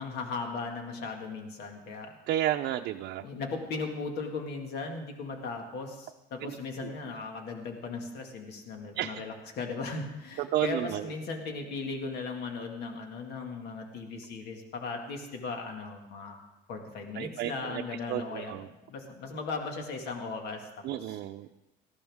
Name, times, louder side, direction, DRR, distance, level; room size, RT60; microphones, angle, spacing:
voice 1, 0.0-2.1 3.2-16.4 16.7-18.6 18.9-21.2, left 4 dB, 75° left, 3 dB, 2.1 m, -37 dB
voice 2, 2.3-3.2 6.4-6.5 6.8-6.9 9.0-9.2 10.4-11.1 17.2-17.8 18.1-18.7 20.8-21.5, right 13 dB, 75° right, 4 dB, 0.6 m, -31 dB
18.5 x 14.0 x 3.6 m, 1.0 s
cardioid pair, 110°, 17 cm